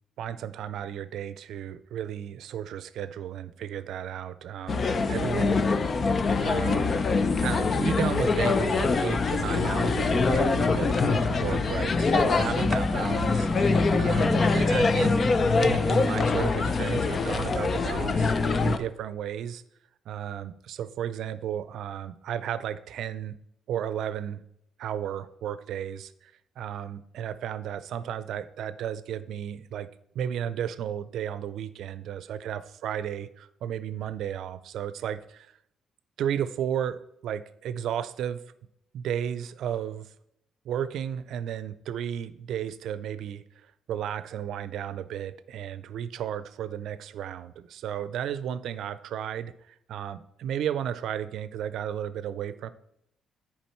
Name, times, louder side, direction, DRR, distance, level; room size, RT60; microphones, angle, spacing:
voice 1, 0.2-4.8 5.1-5.7 6.4-7.0 7.4-15.1 15.6-18.3 18.6-19.6 20.1-23.4 23.7-24.4 24.8-26.3 26.6-29.9 30.1-35.5 36.2-38.4 38.9-40.1 40.6-43.4 43.9-52.7, right 9 dB, 75° right, 15 dB, 0.5 m, -33 dB
sound 1, 4.7-18.8, left 4 dB, 40° left, 0.6 m, -24 dB
10.5 x 4.8 x 4.4 m, 0.78 s
cardioid pair, 90°, 0 cm